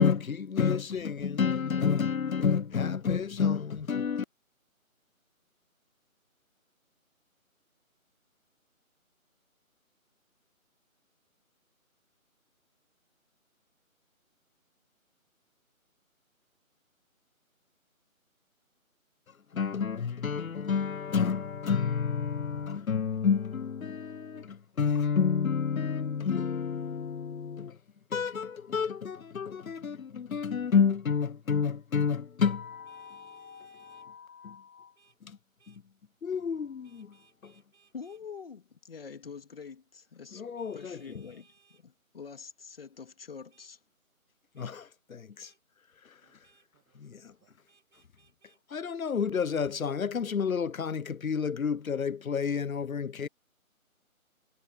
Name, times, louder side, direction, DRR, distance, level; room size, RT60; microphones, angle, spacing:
voice 1, 0.0-4.2 19.5-27.8 28.1-34.9 35.2-35.4 35.7-35.8 36.2-37.2 37.4-37.5 40.3-41.0 44.6-45.5 48.7-53.3, left 6 dB, 75° left, 0.9 m, -30 dB
Vehicle horn car horn honking, 32.8-34.1 35.0-35.2 35.6-35.8 36.8-38.2 40.6-41.8 43.5-43.7 44.6-44.7 45.4-45.6 46.4-46.7 47.7-48.6, right 6 dB, 55° right, 6.1 m, -65 dB
voice 2, 37.9-40.4 40.7-43.8, left 6 dB, 40° left, 2.9 m, -45 dB
voice 3, 45.8-47.7 52.7-53.3, right 38 dB, 15° right, 6.2 m, -74 dB
figure-of-eight pair, 160°, 42 cm